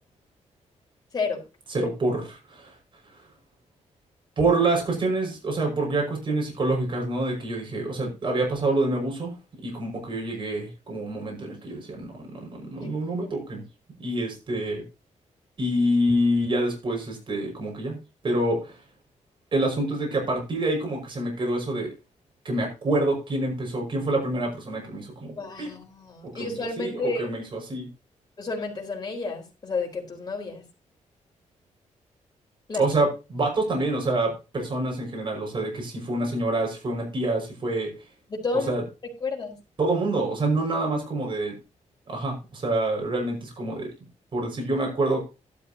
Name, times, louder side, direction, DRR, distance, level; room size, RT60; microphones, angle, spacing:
voice 1, 1.7-2.7 4.4-9.3 9.6-13.6 14.0-14.8 15.6-18.0 18.2-18.7 19.5-21.9 22.4-25.7 26.2-27.9 32.8-37.9 38.7-38.8 39.8-41.5 42.1-43.9 44.3-45.2, right 2 dB, 40° right, 0 dB, 5.8 m, -27 dB
voice 2, 25.3-27.3 28.4-30.6 32.7-32.8 38.3-38.7 39.2-39.6, left 3 dB, 30° left, 0 dB, 4.6 m, -31 dB
12.5 x 12.5 x 2.9 m, 0.30 s
wide cardioid pair, 125°, 13 cm